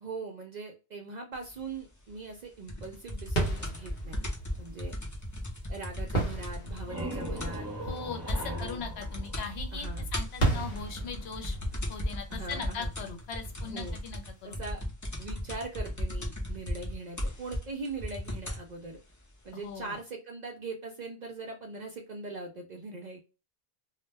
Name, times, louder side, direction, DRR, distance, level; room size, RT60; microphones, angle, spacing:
voice 1, 0.0-4.2 4.6-5.0 5.7-7.7 8.3-8.8 9.7-10.1 12.3-12.9 13.6-14.0 14.4-14.8 15.2-19.0 19.4-23.2, right 3 dB, 55° right, 2 dB, 0.5 m, -41 dB
sound 1, 2.7-7.7 8.0-8.1 8.3-8.7 9.0-9.5 9.8-18.7 19.5-19.6, left 1 dB, 25° left, 0.4 m, -36 dB
sound 2, 3.3-13.9, right 2 dB, 45° left, 1.0 m, -36 dB
sound 3, 6.6-10.2, equal, 15° right, 0.7 m, -40 dB
voice 2, 7.9-11.6 11.9-14.6 19.6-19.9, left 5 dB, 70° left, 5 dB, 0.9 m, -40 dB
2.2 x 2.1 x 3.2 m, 0.31 s
omnidirectional pair, 1.1 m